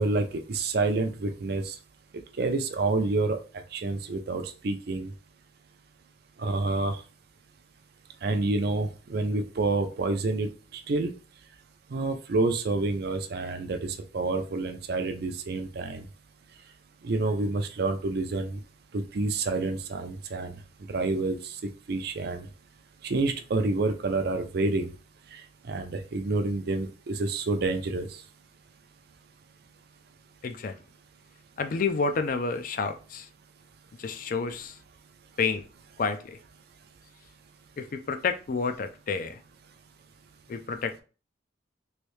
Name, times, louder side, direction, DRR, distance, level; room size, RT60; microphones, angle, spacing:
voice 1, 0.0-1.7 2.4-3.4 3.7-5.1 6.4-7.0 8.2-10.5 10.9-11.1 11.9-16.0 17.0-18.6 18.9-20.5 20.9-21.4 21.9-22.5 23.0-24.9 25.7-28.1, right 3 dB, 60° right, 0.5 m, -28 dB
voice 2, 30.4-30.7 31.6-33.3 34.0-34.7 35.4-35.6 36.0-36.4 37.8-39.4 40.5-41.0, left 4 dB, 50° left, 0.4 m, -29 dB
3.2 x 2.7 x 3.1 m
head